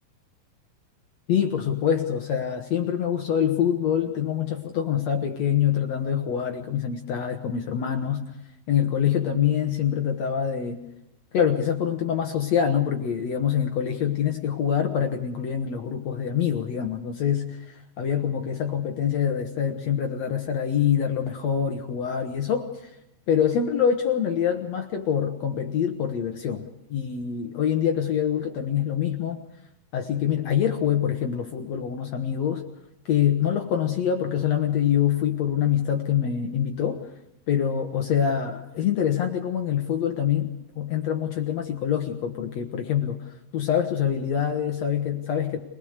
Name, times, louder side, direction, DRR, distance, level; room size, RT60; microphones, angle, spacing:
voice 1, 1.3-8.2 8.7-10.8 11.3-22.9 23.3-29.4 29.9-32.6 33.1-37.1 37.5-45.6, left 8 dB, 65° left, 5 dB, 1.8 m, -25 dB
24.5 x 19.5 x 6.6 m, 0.83 s
omnidirectional pair, 4.5 m